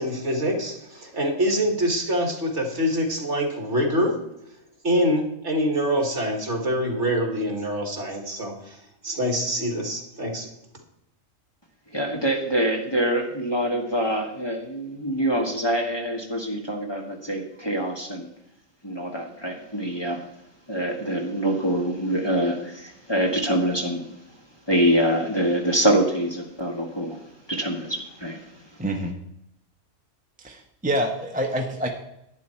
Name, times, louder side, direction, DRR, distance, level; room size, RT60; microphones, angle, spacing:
voice 1, 0.0-4.2 4.8-8.8 9.0-10.5, equal, 60° right, 2 dB, 2.3 m, -25 dB
voice 2, 11.9-18.3 18.8-20.2 20.7-24.1 24.7-27.2 27.5-28.4, right 1 dB, 20° left, 0 dB, 1.5 m, -25 dB
voice 3, 28.8-29.2 30.4-31.9, equal, 5° right, 2 dB, 0.8 m, -27 dB
11.0 x 9.9 x 4.4 m, 0.79 s
omnidirectional pair, 1.4 m